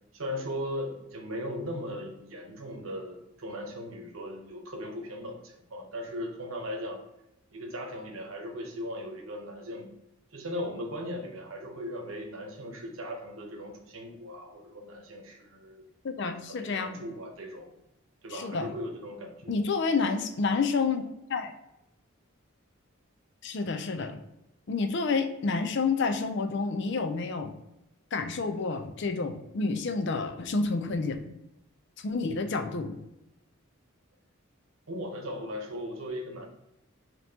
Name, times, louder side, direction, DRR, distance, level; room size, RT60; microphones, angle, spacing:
voice 1, 0.1-7.0 7.5-9.9 10.3-15.9 16.4-17.7 18.2-19.5 34.9-36.5, equal, 70° right, 3 dB, 0.9 m, -38 dB
voice 2, 16.0-17.0 18.3-18.7 19.5-21.5 23.4-24.2 24.7-27.5 28.1-31.3 32.0-33.0, left 4 dB, 55° left, 7 dB, 0.4 m, -29 dB
5.2 x 2.9 x 2.8 m, 0.88 s
head